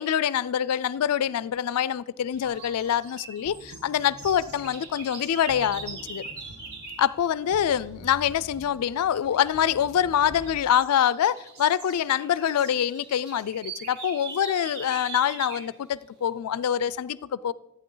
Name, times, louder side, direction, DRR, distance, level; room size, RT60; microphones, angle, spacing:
voice 1, 0.0-6.2 7.0-17.5, left 9 dB, 85° left, 0.4 m, -25 dB
sound 1, 2.4-7.1 9.3-9.7 10.2-15.7, right 4 dB, 45° right, 3.4 m, -42 dB
sound 2, 2.4-10.6, right 2 dB, 70° right, 1.2 m, -48 dB
15.0 x 8.9 x 3.8 m
head